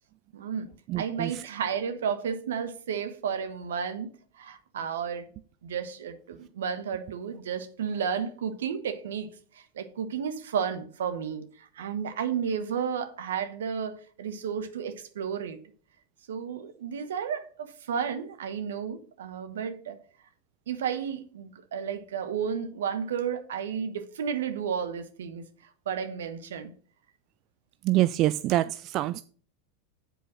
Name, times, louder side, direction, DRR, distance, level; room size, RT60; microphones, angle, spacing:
voice 1, 0.3-0.7 1.0-5.3 5.6-15.6 16.3-20.0 20.7-25.4 25.9-26.7, right 7 dB, 75° right, 1.2 m, -32 dB
voice 2, 0.9-1.5 27.8-29.2, right 15 dB, 45° right, 0.3 m, -26 dB
8.1 x 4.6 x 6.2 m
hypercardioid pair, 95°, 0 cm